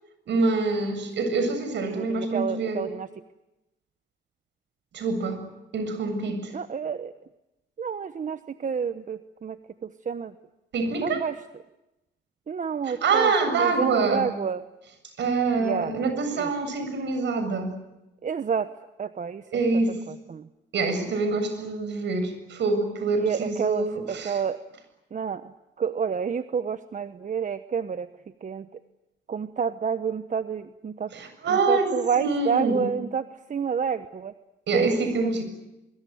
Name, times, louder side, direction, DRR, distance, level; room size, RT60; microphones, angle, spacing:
voice 1, 0.3-2.9 4.9-5.4 5.7-6.5 10.7-11.2 12.9-14.2 15.2-17.7 19.5-20.0 20.7-24.4 31.1-32.8 34.7-35.4, right 3 dB, 65° right, 8 dB, 7.3 m, -26 dB
voice 2, 1.8-3.1 6.5-7.1 7.8-10.3 11.0-11.4 12.5-13.3 13.6-14.6 15.6-15.9 16.3-16.5 18.2-18.7 19.0-19.5 20.1-20.5 23.1-24.6 25.1-28.1 28.4-28.7 29.3-31.1 31.5-34.3 34.7-35.4, right 6 dB, 40° right, 11 dB, 1.1 m, -29 dB
24.0 x 24.0 x 9.5 m, 0.95 s
cardioid pair, 90°, 20 cm